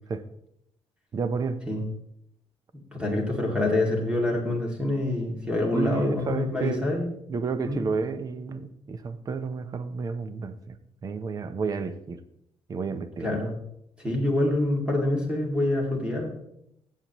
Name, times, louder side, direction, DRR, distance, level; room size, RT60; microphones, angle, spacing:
voice 1, 1.1-1.6 5.7-6.9 7.3-10.8 11.0-12.2 12.7-13.4, right 5 dB, 35° right, 11 dB, 0.7 m, -31 dB
voice 2, 2.9-7.2 7.7-7.8 13.2-13.6 14.0-16.3, left 1 dB, 10° right, 0 dB, 2.4 m, -26 dB
17.0 x 7.5 x 3.0 m, 0.75 s
cardioid pair, 145°, 11 cm